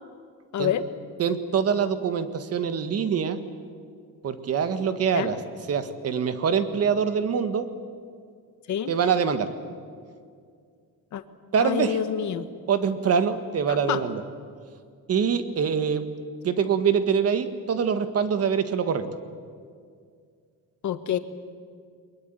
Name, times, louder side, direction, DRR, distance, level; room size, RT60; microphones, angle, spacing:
voice 1, 0.5-0.8 5.1-5.3 8.7-8.9 11.1-11.2 11.6-12.5 13.9-14.0 20.8-21.2, left 9 dB, 55° left, 11 dB, 1.4 m, -27 dB
voice 2, 1.2-3.4 4.2-5.4 5.7-7.7 8.9-9.5 11.5-12.0 12.7-14.2 15.1-16.0 16.4-19.1, right 6 dB, 45° right, 10 dB, 1.6 m, -24 dB
23.5 x 21.5 x 9.3 m, 2.2 s
cardioid pair, 170°, 35 cm